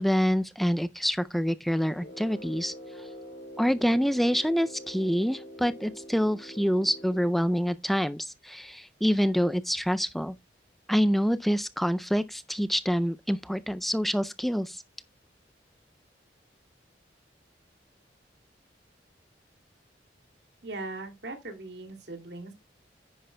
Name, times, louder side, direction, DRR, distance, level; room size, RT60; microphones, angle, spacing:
voice 1, 0.0-3.1 3.6-10.3 10.9-14.8, equal, ahead, 0.4 m, -26 dB
Brass instrument, 1.9-7.6, equal, 65° left, 3.0 m, -45 dB
voice 2, 20.6-22.5, right 2 dB, 65° right, 2.6 m, -39 dB
10.5 x 9.9 x 2.2 m
head